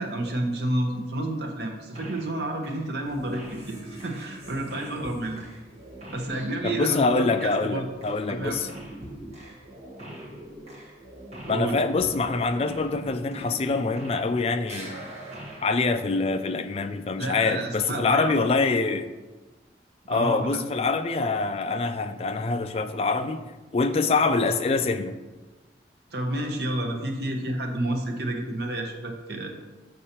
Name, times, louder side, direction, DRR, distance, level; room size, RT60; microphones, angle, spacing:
voice 1, 0.0-5.5 6.1-7.9 8.3-8.6 11.4-11.9 17.2-18.3 20.1-20.6 26.1-29.5, right 1 dB, 65° right, 3 dB, 0.8 m, -30 dB
sound 1, 2.0-2.4 2.6-14.4 14.6-16.8, right 1 dB, 35° right, 1.4 m, -42 dB
voice 2, 6.6-8.7 11.5-15.0 15.6-19.1 20.1-23.4 23.7-25.1, left 3 dB, 35° left, 8 dB, 0.3 m, -25 dB
6.6 x 5.4 x 2.9 m, 1.2 s
head